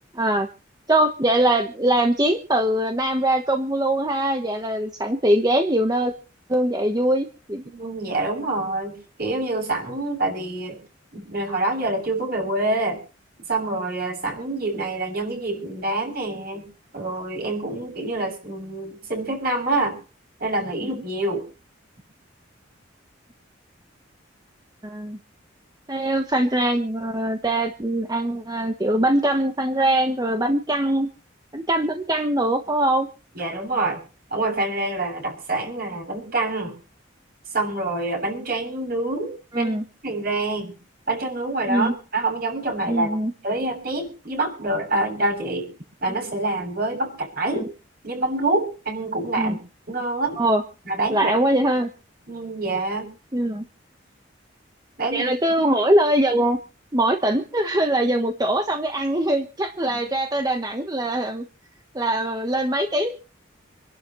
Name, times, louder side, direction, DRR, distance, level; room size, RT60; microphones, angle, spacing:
voice 1, 0.1-0.5 0.9-6.1 6.5-7.6 24.8-25.2 25.9-31.1 31.5-33.1 39.5-39.8 41.7-41.9 42.9-43.3 47.5-47.7 49.4-49.6 50.4-50.6 51.1-51.9 53.3-53.6 55.1-56.6 56.9-61.4 61.9-63.1, right 1 dB, 20° right, 5 dB, 1.2 m, -22 dB
voice 2, 7.7-10.8 11.1-13.0 13.5-16.7 16.9-20.0 20.4-21.5 33.4-34.0 34.3-36.8 37.5-39.7 40.0-40.8 41.1-43.1 43.4-45.7 46.0-47.7 48.0-49.6 49.9-50.4 50.9-51.5 52.3-53.1 55.0-55.3 59.9-60.0, right 2 dB, 50° right, 2 dB, 7.1 m, -26 dB
27.5 x 11.5 x 3.2 m, 0.36 s
head